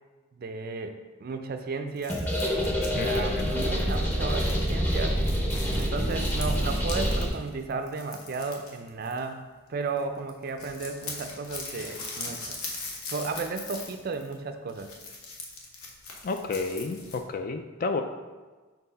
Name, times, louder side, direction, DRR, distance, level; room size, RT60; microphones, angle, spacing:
voice 1, 0.3-2.2 2.9-5.2 5.8-9.4 9.7-12.6 13.1-14.9, right 4 dB, 45° right, 7 dB, 0.4 m, -34 dB
sound 1, 2.0-9.6 9.9-10.0 10.3-17.2, left 3 dB, 80° left, 1.0 m, -41 dB
sound 2, 2.1-7.3, equal, 10° left, 0.8 m, -26 dB
voice 2, 2.9-3.5 16.2-18.0, left 3 dB, 40° left, 6 dB, 0.3 m, -31 dB
4.5 x 4.0 x 5.3 m, 1.3 s
head